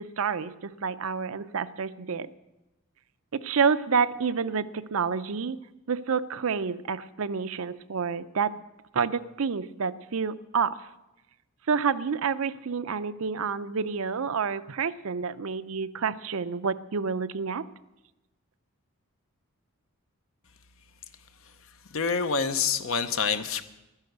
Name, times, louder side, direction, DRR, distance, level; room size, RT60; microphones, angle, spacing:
voice 1, 0.0-2.3 3.3-5.6 5.9-8.5 8.9-10.9 11.7-17.6, right 6 dB, 70° right, 13 dB, 0.5 m, -29 dB
voice 2, 21.9-23.6, left 5 dB, 65° left, 11 dB, 0.9 m, -26 dB
11.5 x 10.5 x 7.9 m, 0.98 s
head